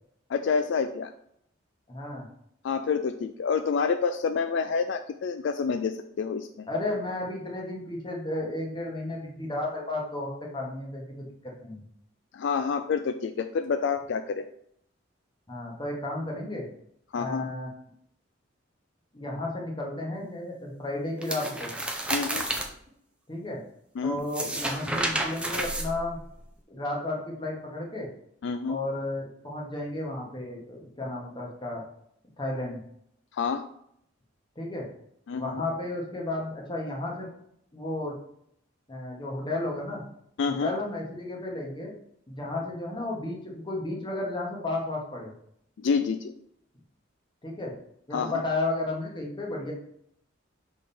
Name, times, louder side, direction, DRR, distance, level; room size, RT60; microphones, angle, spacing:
voice 1, 0.3-1.1 2.6-6.7 12.3-14.5 17.1-17.4 22.1-22.5 24.0-24.2 28.4-28.8 33.3-33.7 35.3-35.6 40.4-40.7 45.8-46.3 48.1-48.4, left 5 dB, 65° left, 8 dB, 0.3 m, -28 dB
voice 2, 1.9-2.3 6.7-11.8 15.5-16.7 17.1-17.7 19.1-21.7 23.3-23.6 24.0-26.2 26.7-28.1 28.7-31.8 32.4-32.8 34.5-34.9 35.4-37.3 37.7-38.1 38.9-40.0 40.5-41.9 42.3-45.3 47.4-47.8 48.1-49.7, left 2 dB, 25° left, -1 dB, 1.5 m, -33 dB
sound 1, 21.2-22.7 24.2-26.4, right 1 dB, 5° right, 0.6 m, -31 dB
6.2 x 3.7 x 4.2 m, 0.71 s
head